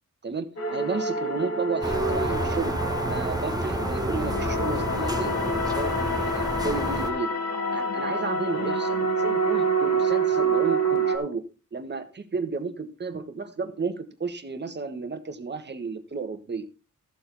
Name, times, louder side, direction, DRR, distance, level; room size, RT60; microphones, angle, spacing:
voice 1, 0.2-2.8 3.0-6.0 6.2-7.3 7.7-11.4 11.7-16.7, right 4 dB, 35° right, 8 dB, 1.4 m, -32 dB
sound 1, 0.6-11.2, right 2 dB, 55° left, 2.2 m, -27 dB
sound 2, 1.8-7.1, right 1 dB, 10° right, 1.3 m, -29 dB
14.5 x 6.9 x 4.0 m, 0.32 s
wide cardioid pair, 160°, 30 cm